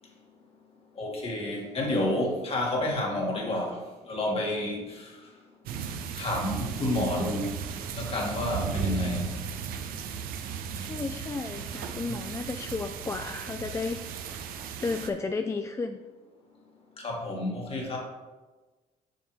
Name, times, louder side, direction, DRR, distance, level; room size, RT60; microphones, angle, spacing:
voice 1, 1.0-3.8 4.1-5.1 6.2-7.5 7.9-9.3 17.0-18.0, left 1 dB, 40° left, -1 dB, 2.1 m, -29 dB
sound 1, 5.7-15.1, right 7 dB, 80° right, 0.6 m, -35 dB
voice 2, 10.7-14.0 14.8-16.0, left 4 dB, 20° left, 6 dB, 0.3 m, -33 dB
6.7 x 6.4 x 3.3 m, 1.2 s
cardioid pair, 85°, 15 cm